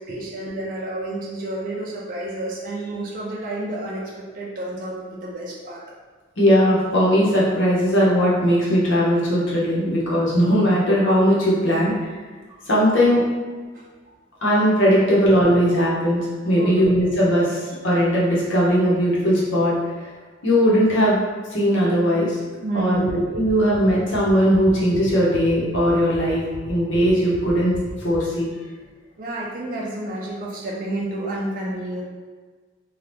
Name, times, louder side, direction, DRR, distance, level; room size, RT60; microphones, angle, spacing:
voice 1, 0.0-5.8 13.7-13.9 16.6-16.9 22.6-23.1 29.2-32.0, right 1 dB, 45° right, -4 dB, 0.4 m, -30 dB
voice 2, 6.4-11.9 12.7-13.2 14.4-16.2 16.4-19.7 20.0-20.1 20.4-21.2 21.5-22.4 22.7-26.4 26.7-27.7 28.0-28.5, equal, 80° left, -6 dB, 1.0 m, -19 dB
sound 1, 23.1-28.2, left 2 dB, 55° left, 0.4 m, -38 dB
2.8 x 2.3 x 3.3 m, 1.4 s
head